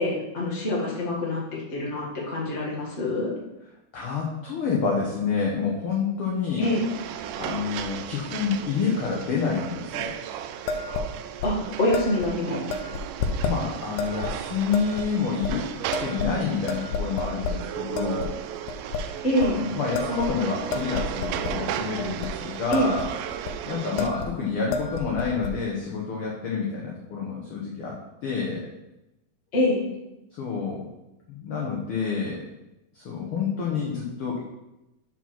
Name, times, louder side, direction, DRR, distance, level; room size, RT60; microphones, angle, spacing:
voice 1, 0.0-1.4 1.7-3.3 6.6-6.8 11.4-12.6 19.2-19.6 22.7-22.9 29.5-29.8, left 1 dB, 30° left, -4 dB, 1.4 m, -25 dB
voice 2, 3.9-6.7 7.4-10.2 13.4-15.7 16.0-18.4 19.4-23.0 23.7-28.7 30.3-30.9 31.3-32.4 32.9-34.4, left 5 dB, 65° left, -3 dB, 1.4 m, -28 dB
sound 1, 6.6-24.1, right 10 dB, 90° right, 2.2 m, -35 dB
sound 2, 10.7-11.1 11.4-11.5 11.9-12.3 12.7-13.6 14.0-14.3 14.7-15.1 15.4-15.5 15.9-16.4 16.7-17.6 18.0-18.3 18.7-19.0 19.4-19.6 20.0-21.6 22.0-22.3 22.6-23.1 23.3-23.5 24.0-24.3 24.6-25.5, left 4 dB, 80° left, 2.1 m, -30 dB
5.7 x 5.0 x 5.9 m, 0.94 s
omnidirectional pair, 3.7 m